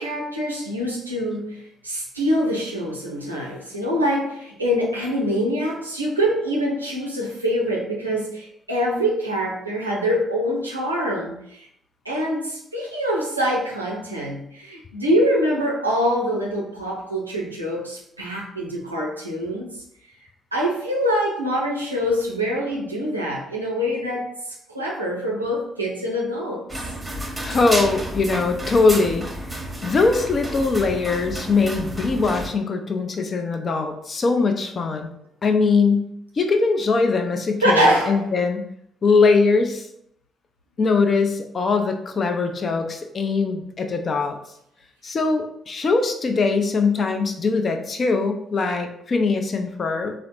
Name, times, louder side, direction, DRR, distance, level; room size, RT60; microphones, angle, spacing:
voice 1, 0.0-11.7 12.0-19.8 20.5-26.7 37.6-38.3, equal, 85° right, -3 dB, 0.5 m, -24 dB
sound 1, 26.7-32.5, right 1 dB, 15° right, 0.9 m, -31 dB
voice 2, 27.4-29.2 29.8-35.1 35.4-36.1 36.4-38.7 39.0-39.9 40.8-44.4 45.0-50.1, left 4 dB, 40° left, 5 dB, 0.5 m, -21 dB
3.8 x 2.0 x 2.9 m, 0.73 s
figure-of-eight pair, 40°, 0 cm